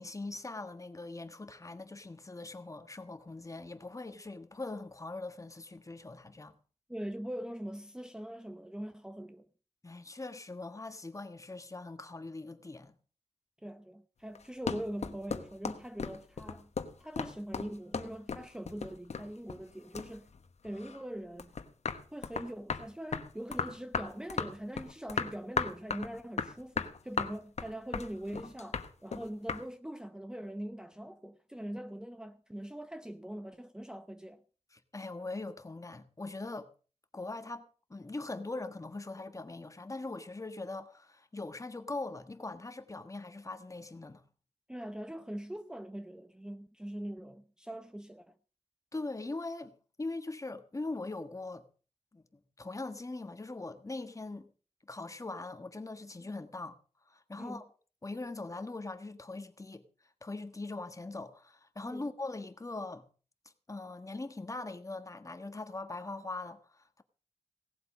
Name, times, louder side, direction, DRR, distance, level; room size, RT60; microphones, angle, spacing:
voice 1, 0.0-6.6 9.8-13.0 34.7-36.7 37.1-44.2 48.9-51.6 52.1-54.5 54.9-56.8 57.1-57.6 58.0-59.8 60.2-63.1 63.7-67.0, left 2 dB, 30° left, 1.5 m, -41 dB
voice 2, 6.9-9.5 13.6-16.7 17.0-20.3 20.6-21.5 22.1-34.4 44.7-48.3 56.2-56.3 57.4-57.6 61.9-62.0, right 1 dB, 5° right, 0.7 m, -42 dB
sound 1, 14.3-19.7 19.9-21.0 21.4-29.6, left 5 dB, 80° left, 1.2 m, -36 dB
17.5 x 8.1 x 6.3 m
wide cardioid pair, 90°, 11 cm